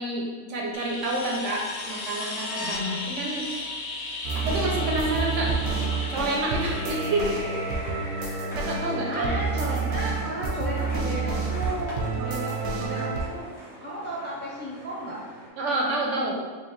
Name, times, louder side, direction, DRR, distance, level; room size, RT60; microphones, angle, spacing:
voice 1, 0.0-3.5 4.3-5.5 6.1-7.4 8.5-9.4 15.6-16.4, right 2 dB, 70° right, -1 dB, 0.8 m, -28 dB
sound 1, 0.7-9.4 11.8-11.9, left 3 dB, 60° left, 0.8 m, -36 dB
voice 2, 2.6-3.0 9.1-13.5 13.8-15.2, equal, 10° left, -6 dB, 0.5 m, -34 dB
sound 2, 4.2-13.3, right 4 dB, 90° right, 1.1 m, -29 dB
sound 3, 5.4-15.5, right 1 dB, 35° left, 1.1 m, -42 dB
4.7 x 2.7 x 3.0 m, 1.5 s
omnidirectional pair, 1.4 m